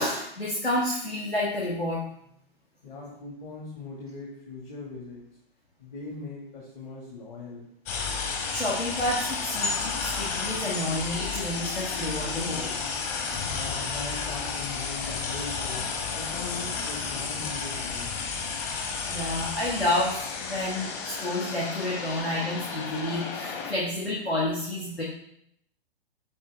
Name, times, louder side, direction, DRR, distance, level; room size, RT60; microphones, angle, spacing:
voice 1, 0.0-2.0 8.3-12.7 19.0-25.0, left 1 dB, 90° left, -5 dB, 1.9 m, -30 dB
voice 2, 2.8-5.2 5.8-7.7 13.5-18.2, left 3 dB, 50° left, -3 dB, 2.0 m, -40 dB
sound 1, 7.9-23.7, left 5 dB, 30° left, 1.1 m, -32 dB
8.6 x 4.6 x 3.4 m, 0.71 s
figure-of-eight pair, 115°, 30 cm